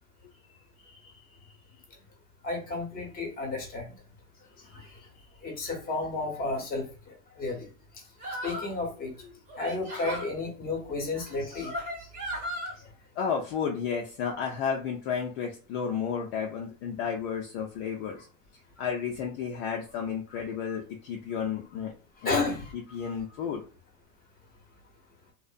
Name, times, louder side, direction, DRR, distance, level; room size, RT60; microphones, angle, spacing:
voice 1, 0.8-1.2 4.9-5.0 13.2-18.3 18.8-21.9 22.2-22.4 22.7-23.6, left 7 dB, 50° left, 1 dB, 0.5 m, -32 dB
voice 2, 2.4-3.9 4.7-4.9 5.4-7.7 8.4-9.1 9.6-11.7 20.7-20.8 22.2-23.1, left 3 dB, 20° left, 2 dB, 0.7 m, -32 dB
sound 1, 8.2-8.8 9.5-10.3 11.2-12.7, equal, 15° right, 0.7 m, -36 dB
2.5 x 2.1 x 2.4 m, 0.37 s
hypercardioid pair, 115°, 46 cm